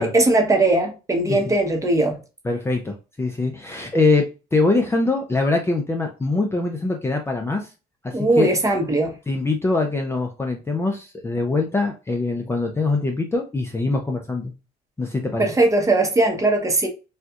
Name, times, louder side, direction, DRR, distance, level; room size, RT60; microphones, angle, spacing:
voice 1, 0.0-2.2 8.1-9.2 15.4-16.9, right 2 dB, 20° right, 0.9 m, -19 dB
voice 2, 2.4-7.7 8.0-8.5 9.3-14.5 15.0-15.5, left 3 dB, 15° left, 0.6 m, -23 dB
4.3 x 2.4 x 2.3 m
cardioid pair, 110°, 17 cm